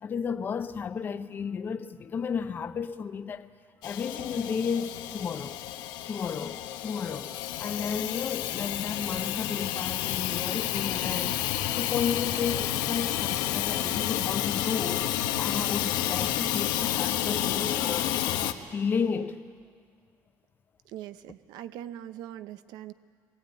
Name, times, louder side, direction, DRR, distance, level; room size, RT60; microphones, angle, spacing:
voice 1, 0.0-3.5 3.8-5.6 6.1-11.4 11.8-18.2 18.7-19.4, left 6 dB, 30° left, 0.7 m, -33 dB
Hiss / Toilet flush / Trickle dribble, 3.8-18.5, left 12 dB, 85° left, 1.0 m, -30 dB
voice 2, 20.9-22.9, right 11 dB, 80° right, 0.8 m, -41 dB
21.0 x 17.0 x 9.3 m
cardioid pair, 155°, 7 cm